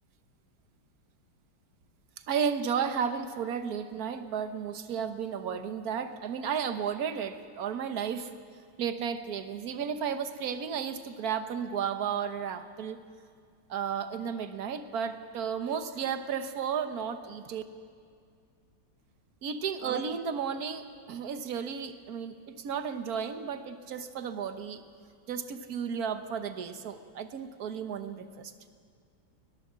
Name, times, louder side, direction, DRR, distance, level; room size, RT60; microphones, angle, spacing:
voice 1, 2.3-8.3 8.8-13.0 13.7-17.6 19.4-24.8 25.3-28.5, right 7 dB, 55° right, 8 dB, 1.5 m, -33 dB
21.5 x 18.5 x 7.5 m, 2.2 s
omnidirectional pair, 2.0 m